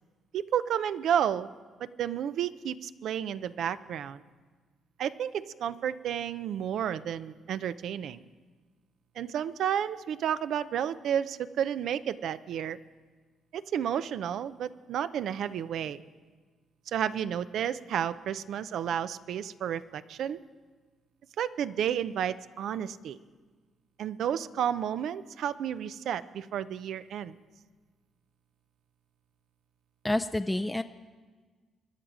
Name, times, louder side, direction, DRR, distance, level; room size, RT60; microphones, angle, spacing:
voice 1, 0.3-1.5 1.8-4.2 5.0-8.2 9.2-12.8 13.5-16.0 16.9-20.4 21.4-23.2 24.0-27.4, right 9 dB, 75° right, 14 dB, 0.5 m, -31 dB
voice 2, 30.0-30.8, left 1 dB, 10° left, 8 dB, 0.4 m, -28 dB
24.0 x 10.0 x 5.0 m, 1.4 s
cardioid pair, 90°, 0 cm